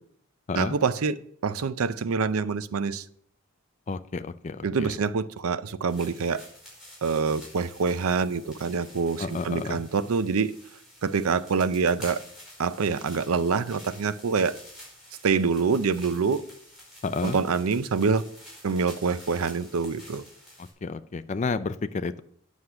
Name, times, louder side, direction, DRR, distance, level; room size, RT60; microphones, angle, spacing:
voice 1, 0.5-3.0 4.6-6.4 7.0-10.5 11.0-12.2 12.6-14.6 15.2-16.4 17.2-18.3 18.6-20.2, right 5 dB, 85° right, 15 dB, 0.5 m, -26 dB
voice 2, 3.9-4.9 9.2-9.8 17.0-17.4 20.6-22.2, left 4 dB, 35° left, 13 dB, 0.4 m, -31 dB
sound 1, 5.9-20.7, equal, ahead, 4.8 m, -49 dB
9.7 x 6.4 x 5.7 m, 0.65 s
head